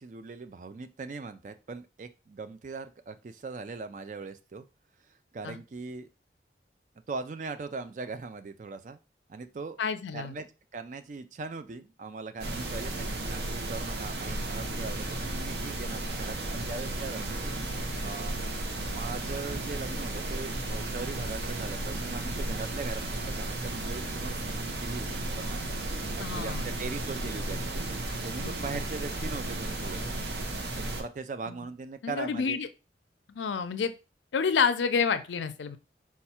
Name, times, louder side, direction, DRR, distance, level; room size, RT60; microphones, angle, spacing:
voice 1, 0.0-4.6 5.1-6.1 7.1-9.0 9.3-9.8 10.1-18.4 18.9-25.6 26.1-27.9 28.2-30.1 30.8-32.6, right 4 dB, 45° right, 10 dB, 0.3 m, -40 dB
voice 2, 9.8-10.3 26.2-26.7 28.7-28.8 31.5-31.6 32.0-32.7 33.3-33.9 34.3-35.8, left 6 dB, 85° left, 11 dB, 0.4 m, -28 dB
sound 1, 12.4-31.0, right 2 dB, 65° right, 0.8 m, -34 dB
4.4 x 2.3 x 4.2 m, 0.29 s
head